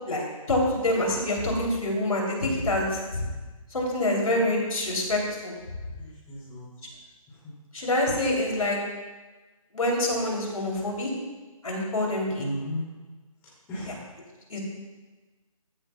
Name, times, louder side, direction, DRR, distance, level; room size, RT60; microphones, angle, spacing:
voice 1, 0.1-3.2 3.7-5.5 7.7-8.8 9.7-11.1 11.6-12.5 14.5-14.6, left 1 dB, 75° left, -1 dB, 3.0 m, -26 dB
voice 2, 6.0-6.7 7.3-7.5 12.3-12.8 13.7-13.9, equal, 15° left, -11 dB, 2.7 m, -35 dB
14.5 x 8.6 x 2.3 m, 1.2 s
figure-of-eight pair, 150°, 18 cm